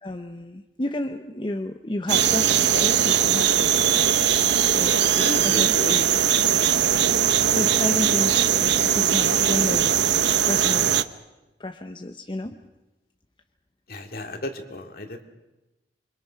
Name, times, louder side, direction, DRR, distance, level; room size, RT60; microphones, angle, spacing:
voice 1, 0.0-4.2 4.7-4.9 5.4-5.7 7.3-10.0 10.4-10.9 11.6-12.6, left 1 dB, 25° left, 6 dB, 0.9 m, -31 dB
sound 1, 2.1-11.0, right 9 dB, 80° right, 0.9 m, -20 dB
voice 2, 5.1-6.1 13.9-15.2, left 1 dB, 55° left, 4 dB, 2.4 m, -33 dB
27.5 x 25.0 x 5.8 m, 1.0 s
head